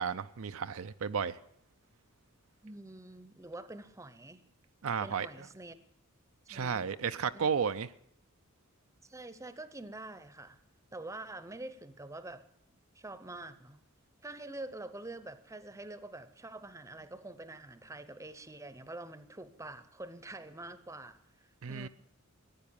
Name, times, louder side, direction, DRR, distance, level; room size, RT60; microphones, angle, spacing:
voice 1, 0.0-1.4 4.8-5.5 6.5-7.9 21.6-21.9, right 6 dB, 65° right, 0.5 m, -33 dB
voice 2, 2.6-4.4 5.0-5.8 6.5-6.9 7.3-7.5 9.0-10.6 10.9-12.5 13.0-13.8 14.2-21.2 21.7-21.9, right 2 dB, 15° right, 0.8 m, -46 dB
15.5 x 9.5 x 8.6 m
head